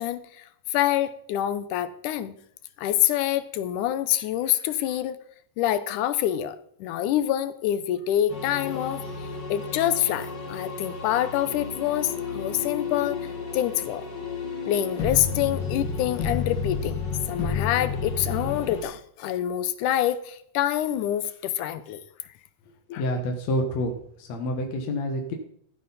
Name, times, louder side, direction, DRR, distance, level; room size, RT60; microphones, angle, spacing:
voice 1, 0.0-2.3 2.8-5.2 5.6-13.2 13.5-14.1 14.7-17.0 17.3-22.0 22.9-23.0, left 12 dB, 75° left, 13 dB, 2.1 m, -26 dB
sound 1, 8.3-18.8, left 5 dB, 45° left, 1.7 m, -32 dB
voice 2, 23.0-25.3, left 1 dB, 60° left, 2 dB, 2.2 m, -28 dB
14.5 x 9.5 x 4.1 m, 0.66 s
omnidirectional pair, 3.9 m